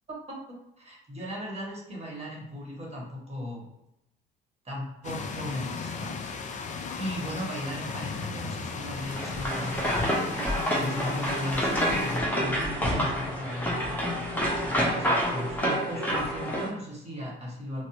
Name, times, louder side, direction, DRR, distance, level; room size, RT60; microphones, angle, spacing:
voice 1, 0.1-3.7 4.6-6.5 7.0-17.9, left 1 dB, 20° right, -2 dB, 1.4 m, -37 dB
sound 1, 5.0-12.2, left 5 dB, 25° left, 0.4 m, -37 dB
sound 2, 9.1-16.7, equal, 5° left, 1.0 m, -28 dB
4.1 x 2.1 x 2.8 m, 0.84 s
figure-of-eight pair, 55°, 29 cm